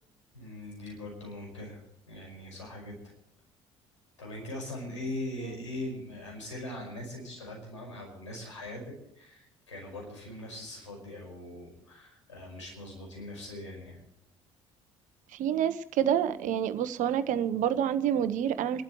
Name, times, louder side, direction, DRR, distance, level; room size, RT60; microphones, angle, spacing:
voice 1, 0.3-1.8 2.1-3.1 4.2-14.0, left 1 dB, 90° left, 0 dB, 5.4 m, -41 dB
voice 2, 15.3-18.8, right 9 dB, 55° right, 12 dB, 1.1 m, -28 dB
28.0 x 12.0 x 3.2 m, 0.78 s
hypercardioid pair, 60°, 15 cm